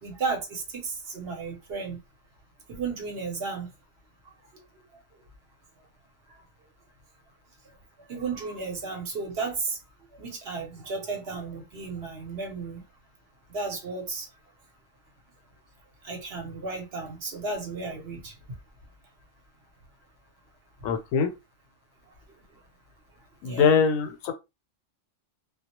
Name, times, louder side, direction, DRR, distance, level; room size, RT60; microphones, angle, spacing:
voice 1, 0.0-2.0 2.7-3.7 8.1-9.8 10.1-12.8 13.5-14.3 16.0-18.6 23.4-23.7, right 4 dB, 55° right, 0.9 m, -33 dB
voice 2, 20.8-21.3 23.4-24.3, left 6 dB, 85° left, 1.0 m, -22 dB
2.3 x 2.0 x 2.8 m
omnidirectional pair, 1.4 m